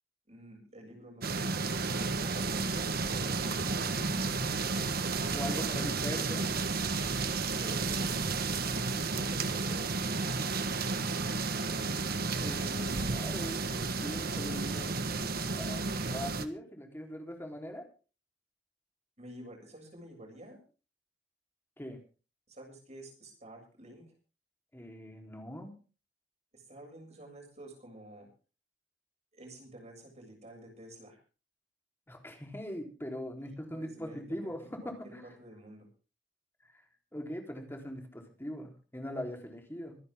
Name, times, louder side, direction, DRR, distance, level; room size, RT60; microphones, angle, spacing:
voice 1, 0.3-4.4 5.5-5.9 7.2-8.4 9.1-10.7 19.2-20.6 22.5-24.1 26.5-28.3 29.3-31.2 33.4-35.9, right 1 dB, 40° right, 1 dB, 7.4 m, -50 dB
sound 1, 1.2-16.5, right 3 dB, 55° right, 1.4 m, -32 dB
voice 2, 5.3-6.5 12.4-15.3 15.6-15.8 16.1-17.9 21.8-22.0 24.7-25.7 32.1-35.3 36.7-36.8 37.1-40.0, equal, 15° left, 2 dB, 3.9 m, -41 dB
25.0 x 11.0 x 3.7 m, 0.36 s
head